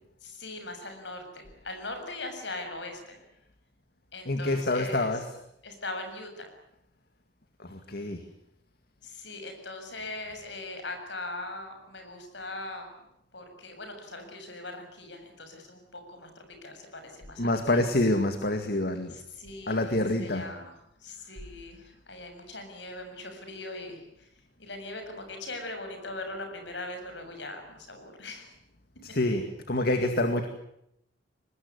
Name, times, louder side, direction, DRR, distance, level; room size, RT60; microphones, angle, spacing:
voice 1, 0.2-3.2 4.1-5.2 5.6-6.5 9.0-12.9 13.3-17.8 19.1-19.8 20.2-20.7 21.0-24.3 24.6-28.5, left 2 dB, 70° left, 6 dB, 7.4 m, -40 dB
voice 2, 4.3-5.3 7.6-8.2 17.4-19.1 19.7-20.5 29.0-30.5, left 1 dB, 55° left, 7 dB, 2.1 m, -27 dB
24.5 x 20.5 x 9.8 m, 0.80 s
head